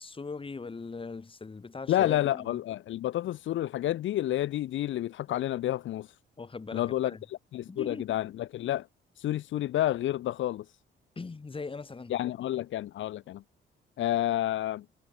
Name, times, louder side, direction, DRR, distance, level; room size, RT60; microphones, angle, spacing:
voice 1, 0.0-2.6 6.4-7.2 7.7-8.2 11.2-12.1, left 4 dB, 25° left, 3.0 m, -40 dB
voice 2, 1.9-6.1 6.7-7.1 7.5-8.9 9.2-10.6 12.1-13.4 14.0-14.8, left 13 dB, 75° left, 1.2 m, -29 dB
cardioid pair, 90°, 20 cm